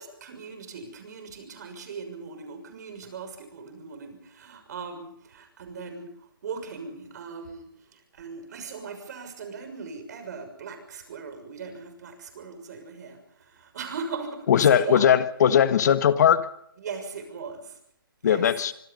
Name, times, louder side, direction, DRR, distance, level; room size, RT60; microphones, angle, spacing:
voice 1, 0.0-6.1 6.4-15.1 16.8-17.8 18.2-18.4, right 5 dB, 50° right, 8 dB, 6.4 m, -39 dB
voice 2, 14.5-16.5 18.2-18.7, left 9 dB, 50° left, 12 dB, 1.5 m, -19 dB
25.5 x 23.0 x 5.5 m, 0.70 s
hypercardioid pair, 160°, 12 cm